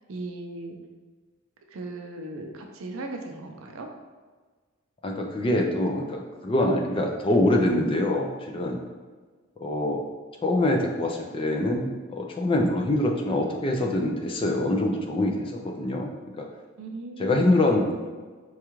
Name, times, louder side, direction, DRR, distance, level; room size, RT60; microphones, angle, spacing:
voice 1, 0.1-0.8 1.7-3.9 16.8-17.6, right 2 dB, 75° right, 3 dB, 0.5 m, -37 dB
voice 2, 5.0-8.8 9.6-10.0 10.4-16.1 16.4-16.5 17.2-18.1, left 1 dB, 25° left, 2 dB, 0.3 m, -24 dB
4.5 x 2.4 x 3.0 m, 1.4 s
head